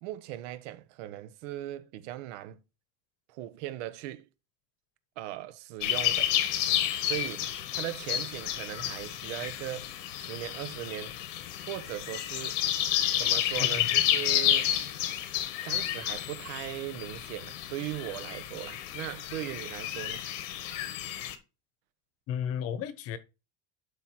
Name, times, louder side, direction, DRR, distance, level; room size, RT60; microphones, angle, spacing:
voice 1, 0.0-2.6 3.3-4.3 5.2-6.3 7.0-11.2 11.6-12.6 13.2-14.7 15.6-20.2, right 14 dB, 75° right, 1.2 m, -39 dB
sound 1, 5.8-21.3, left 12 dB, 90° left, 1.8 m, -31 dB
voice 2, 13.6-13.9 22.3-23.2, left 8 dB, 40° left, 1.1 m, -33 dB
11.5 x 4.3 x 4.5 m
cardioid pair, 170°, 36 cm